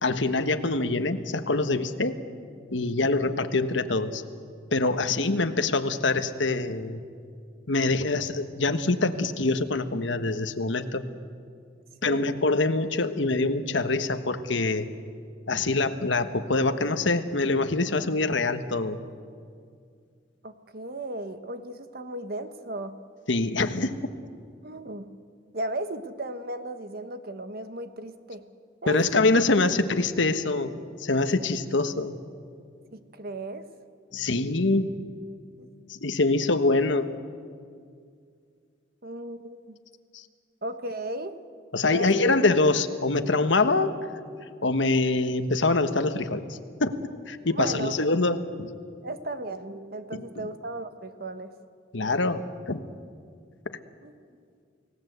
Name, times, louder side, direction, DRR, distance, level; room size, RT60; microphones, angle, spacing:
voice 1, 0.0-2.2 2.7-4.2 4.7-7.0 7.7-11.1 12.0-14.9 15.5-19.0 23.3-23.9 28.9-30.7 31.0-32.2 34.1-34.9 35.9-37.1 40.1-40.2 41.7-44.0 44.6-47.0 47.3-48.7 50.1-50.2 51.9-52.8 53.6-53.8, left 3 dB, 75° left, 9 dB, 1.3 m, -25 dB
voice 2, 20.4-23.0 24.6-25.1 25.5-28.4 28.8-29.1 32.9-33.6 35.6-35.7 39.0-39.8 40.6-41.4 41.9-42.2 47.5-48.0 49.0-51.5 54.0-54.1, right 1 dB, 50° right, 9 dB, 1.3 m, -35 dB
30.0 x 18.0 x 8.1 m, 2.2 s
head